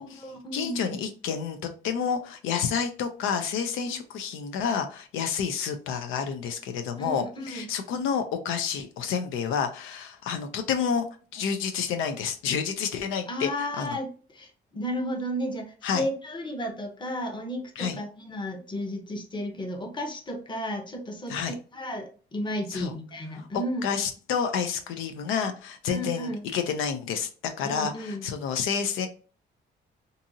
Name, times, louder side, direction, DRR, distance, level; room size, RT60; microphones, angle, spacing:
voice 1, 0.0-1.0 3.9-4.0 7.0-7.7 13.3-24.0 25.9-26.4 27.6-28.2, equal, 25° left, 4 dB, 0.8 m, -33 dB
voice 2, 0.5-11.1 11.3-13.5 13.8-14.0 15.8-16.0 17.8-18.0 21.3-21.5 22.7-22.9 23.8-29.1, left 7 dB, 85° left, 7 dB, 0.4 m, -29 dB
2.6 x 2.6 x 2.6 m, 0.38 s
cardioid pair, 90°, 20 cm